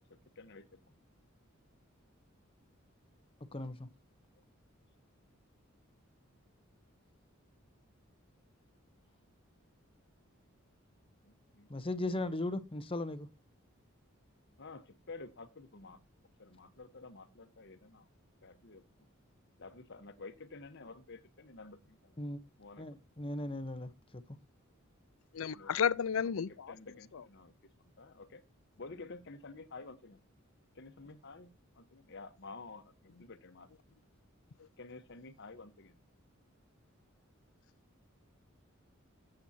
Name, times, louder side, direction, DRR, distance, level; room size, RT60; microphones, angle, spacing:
voice 1, 3.5-3.9 11.7-13.3 22.2-22.4 22.8-24.2, left 2 dB, 25° left, 0.9 m, -37 dB
voice 2, 11.2-12.0 14.6-16.0 16.4-18.1 18.4-18.8 19.6-22.2 22.6-22.9 25.4-25.9 26.1-26.3 26.7-27.5 28.0-28.4 28.8-30.2 30.7-31.5 31.7-33.7 34.8-36.0, left 3 dB, 60° left, 1.1 m, -51 dB
voice 3, 25.3-26.7 27.1-27.2, left 7 dB, 75° left, 0.5 m, -32 dB
14.5 x 7.8 x 2.8 m
head